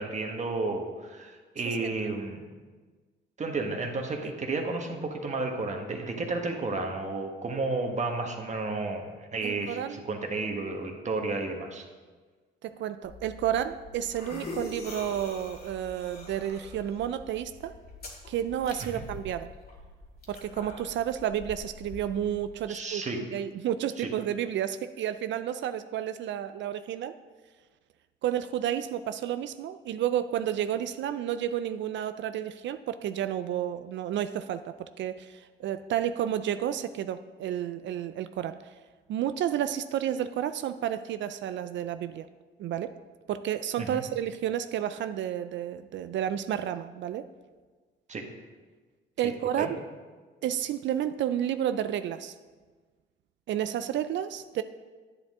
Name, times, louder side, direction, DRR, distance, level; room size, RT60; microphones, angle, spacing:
voice 1, 0.0-2.4 3.4-9.1 9.3-11.8 18.9-19.0 22.7-23.3 24.0-24.1 43.8-44.0 48.1-48.3 49.2-49.7, right 3 dB, 35° right, 3 dB, 1.3 m, -32 dB
voice 2, 9.4-10.0 12.6-17.7 18.3-19.5 20.3-23.0 23.3-27.1 28.2-38.6 39.1-42.3 42.6-42.9 43.3-47.3 49.2-49.8 50.4-52.3 53.5-54.6, right 10 dB, 70° right, 11 dB, 0.4 m, -31 dB
sound 1, 13.0-22.5, left 2 dB, 50° left, 2.2 m, -44 dB
9.9 x 8.8 x 3.6 m, 1.4 s
cardioid pair, 90°, 20 cm